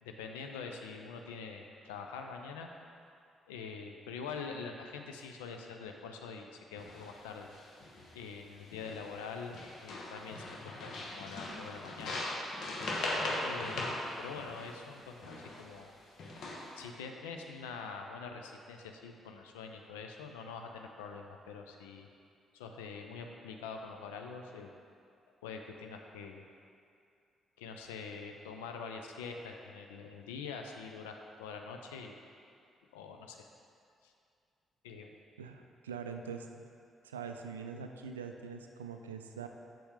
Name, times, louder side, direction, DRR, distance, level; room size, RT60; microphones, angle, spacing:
voice 1, 0.0-2.7 3.5-7.5 8.1-12.4 13.4-15.9 16.8-22.1 22.5-24.7 25.4-26.4 27.6-32.2 32.9-33.5 34.0-34.1 34.8-35.1, left 5 dB, 75° left, 3 dB, 0.5 m, -45 dB
sound 1, 6.8-7.1 7.5-8.1 8.7-9.3 9.5-15.7 16.2-16.8, left 1 dB, 55° left, 1.1 m, -39 dB
voice 2, 35.4-36.7 37.0-39.5, right 6 dB, 80° right, 5 dB, 0.3 m, -43 dB
7.5 x 7.0 x 3.6 m, 2.4 s
figure-of-eight pair, 40°, 0 cm